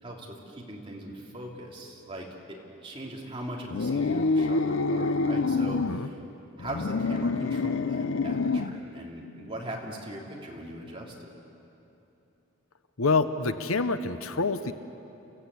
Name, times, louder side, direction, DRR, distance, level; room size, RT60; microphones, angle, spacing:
voice 1, 0.0-2.6 2.8-6.2 6.6-11.3, right 1 dB, 25° right, -2 dB, 3.1 m, -40 dB
sound 1, 3.7-6.0 6.6-8.8, left 3 dB, 65° left, 0.6 m, -27 dB
voice 2, 13.0-14.7, left 3 dB, 80° left, 10 dB, 0.9 m, -26 dB
29.5 x 15.5 x 8.4 m, 2.9 s
head